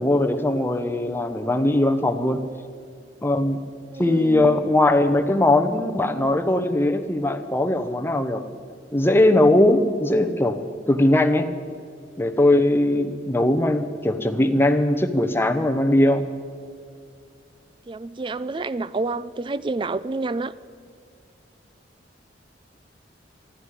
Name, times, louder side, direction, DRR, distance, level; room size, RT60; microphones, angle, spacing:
voice 1, 0.0-2.4 3.2-3.6 4.0-8.4 8.9-11.5 12.2-16.2, left 1 dB, 15° left, 6 dB, 0.9 m, -20 dB
voice 2, 3.9-4.6 17.9-20.5, right 3 dB, 30° right, 16 dB, 0.4 m, -29 dB
19.5 x 13.0 x 5.0 m, 2.3 s
head